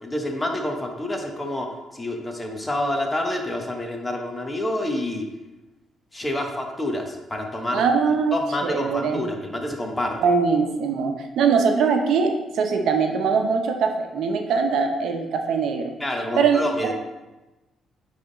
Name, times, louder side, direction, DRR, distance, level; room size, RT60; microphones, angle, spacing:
voice 1, 0.0-5.3 6.1-7.8 8.3-10.2 16.0-16.9, left 1 dB, 15° left, 3 dB, 1.1 m, -28 dB
voice 2, 7.7-8.3 8.6-9.2 10.2-15.9 16.4-16.6, right 5 dB, 75° right, 4 dB, 0.8 m, -22 dB
9.3 x 3.5 x 4.0 m, 1.1 s
cardioid pair, 90°, 0 cm